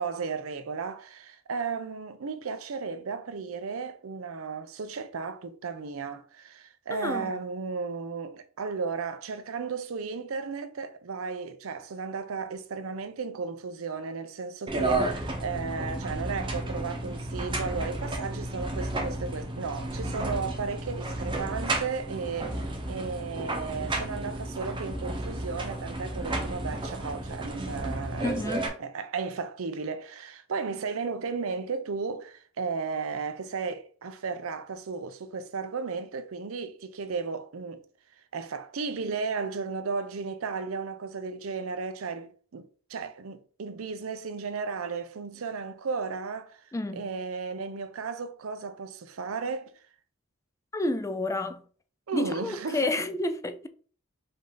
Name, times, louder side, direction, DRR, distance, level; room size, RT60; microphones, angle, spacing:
voice 1, 0.0-37.8 38.3-46.6 46.9-49.7 52.1-53.0, right 5 dB, 90° right, 0.6 m, -34 dB
voice 2, 6.9-7.3 28.2-28.7 46.7-47.1 50.7-51.6 52.1-53.7, left 2 dB, 15° left, 0.3 m, -30 dB
sound 1, 14.7-28.7, right 2 dB, 25° right, 0.9 m, -32 dB
5.2 x 2.7 x 3.8 m
head